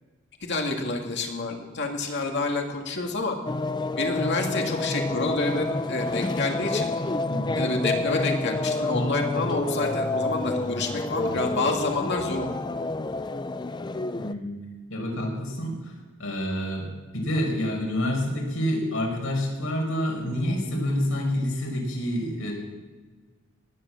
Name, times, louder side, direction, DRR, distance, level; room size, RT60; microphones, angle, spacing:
voice 1, 0.4-3.4 4.0-6.9 7.5-12.6, left 2 dB, 55° left, 2 dB, 2.4 m, -28 dB
sound 1, 3.5-14.3, left 2 dB, 20° left, 0.4 m, -28 dB
voice 2, 7.3-7.6 14.1-14.6 14.9-15.9 16.2-22.5, equal, 70° left, 0 dB, 5.1 m, -28 dB
19.0 x 8.2 x 7.7 m, 1.3 s
head